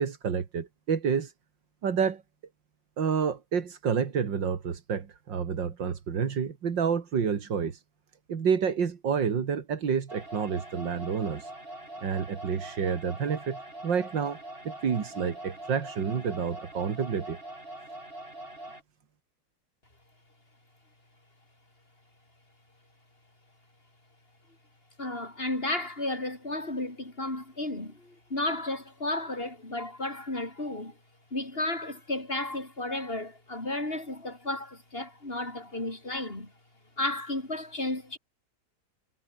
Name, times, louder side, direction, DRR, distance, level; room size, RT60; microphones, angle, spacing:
voice 1, 0.0-1.3 1.8-2.2 3.0-7.8 8.3-11.5 12.0-14.4 14.6-17.4, right 6 dB, 75° right, 2.7 m, -29 dB
sound 1, 10.1-18.8, right 1 dB, 30° right, 6.5 m, -43 dB
voice 2, 25.0-30.9 31.3-36.5 37.0-38.2, left 2 dB, 30° left, 5.9 m, -33 dB
omnidirectional pair, 2.0 m